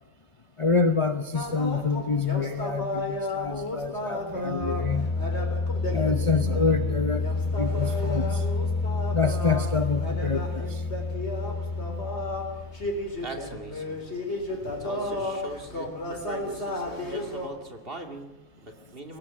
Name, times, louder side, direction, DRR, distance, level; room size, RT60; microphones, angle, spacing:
voice 1, 0.6-5.2 5.9-8.4 9.1-10.8 14.5-14.6, left 4 dB, 25° left, 8 dB, 0.8 m, -27 dB
sound 1, 1.3-17.5, left 1 dB, 45° left, 4.2 m, -33 dB
sound 2, 4.1-12.9, left 3 dB, ahead, 7.6 m, -29 dB
voice 2, 13.2-14.0 14.8-19.2, right 1 dB, 40° right, 5 dB, 2.6 m, -41 dB
22.0 x 18.0 x 8.8 m, 0.96 s
omnidirectional pair, 1.5 m